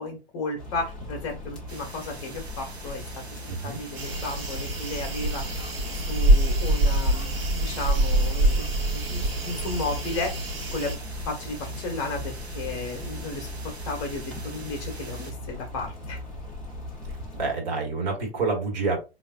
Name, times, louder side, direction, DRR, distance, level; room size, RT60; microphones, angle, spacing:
voice 1, 0.0-3.1 3.6-5.4 5.9-8.7 8.9-10.3 10.7-11.0 11.3-16.2, left 3 dB, 25° left, 2 dB, 0.8 m, -34 dB
sound 1, 0.6-17.5, left 1 dB, 5° left, 0.4 m, -38 dB
sound 2, 1.7-15.3, right 3 dB, 85° right, 0.8 m, -45 dB
voice 2, 3.5-3.8 17.3-19.0, right 4 dB, 45° right, 0 dB, 1.3 m, -28 dB
sound 3, 3.9-11.0, right 1 dB, 60° right, 1.1 m, -25 dB
3.8 x 2.4 x 2.2 m, 0.28 s
figure-of-eight pair, 115°, 32 cm